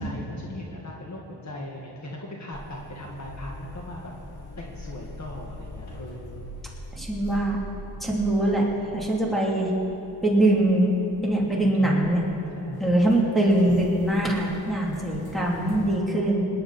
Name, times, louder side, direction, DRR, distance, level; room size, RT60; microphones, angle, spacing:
voice 1, 0.0-4.1 4.6-6.5 11.6-12.0 12.6-12.8 13.6-13.8, left 1 dB, 40° left, -2 dB, 1.7 m, -39 dB
sound 1, 2.5-15.9, equal, 60° left, 2.0 m, -43 dB
voice 2, 6.9-7.6 8.0-8.7 8.9-9.7 10.2-11.0 11.2-12.2 12.8-16.5, right 1 dB, ahead, -4 dB, 3.0 m, -22 dB
26.5 x 10.5 x 4.2 m, 3.0 s
wide cardioid pair, 130°, 42 cm